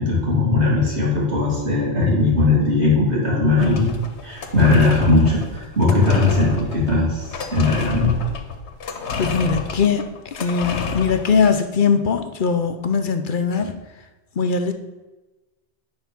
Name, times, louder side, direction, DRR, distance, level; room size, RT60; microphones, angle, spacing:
voice 1, 0.0-3.9 4.2-8.2 13.6-13.7, left 3 dB, 75° right, -4 dB, 2.8 m, -18 dB
sound 1, 3.6-11.5, left 5 dB, 80° left, 1.2 m, -30 dB
voice 2, 9.2-10.1 10.4-13.7 14.4-14.7, left 5 dB, 55° left, 7 dB, 0.8 m, -20 dB
9.3 x 4.4 x 5.9 m, 1.1 s
omnidirectional pair, 1.1 m